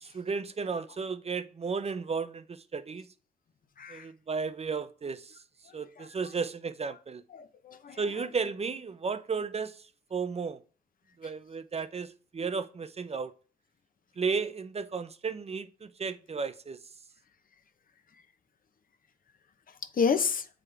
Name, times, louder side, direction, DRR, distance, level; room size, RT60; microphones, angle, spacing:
voice 1, 0.0-3.1 3.9-5.4 5.7-7.2 8.0-10.6 11.2-13.3 14.2-16.8, right 5 dB, 35° right, 0.6 m, -34 dB
voice 2, 3.8-4.1 5.7-6.1 7.3-8.0 19.7-20.5, left 6 dB, 55° left, 0.8 m, -31 dB
7.7 x 3.7 x 3.4 m
cardioid pair, 60°, 17 cm